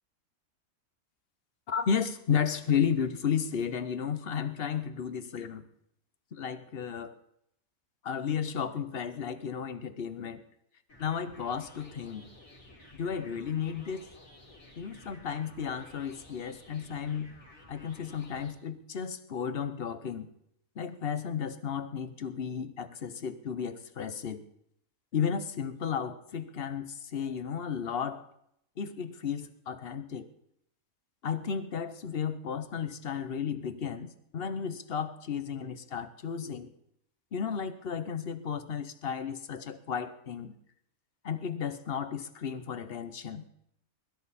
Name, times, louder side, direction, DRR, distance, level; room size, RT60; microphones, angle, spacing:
voice 1, 1.7-5.7 6.3-7.1 8.0-10.4 11.0-12.3 12.9-14.1 14.8-17.3 17.7-20.3 20.8-24.4 25.1-28.2 28.8-30.3 31.2-36.7 37.3-40.5 41.2-43.5, left 7 dB, 50° left, 11 dB, 1.0 m, -33 dB
sound 1, 10.9-18.5, left 1 dB, 65° left, 4.8 m, -54 dB
22.0 x 13.0 x 4.2 m, 0.74 s
omnidirectional pair, 1.5 m